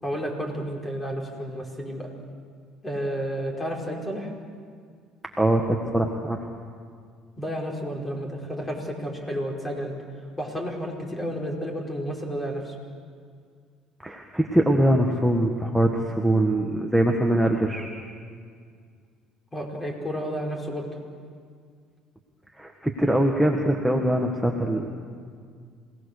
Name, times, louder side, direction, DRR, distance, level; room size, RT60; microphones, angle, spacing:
voice 1, 0.0-2.1 2.8-4.3 7.4-9.9 10.4-12.7 19.5-20.9, equal, 20° left, 0 dB, 4.9 m, -31 dB
voice 2, 5.9-6.4 14.0-17.9 22.6-24.9, right 1 dB, ahead, 1 dB, 1.8 m, -22 dB
27.5 x 18.5 x 6.8 m, 2.1 s
supercardioid pair, 100°, 0 cm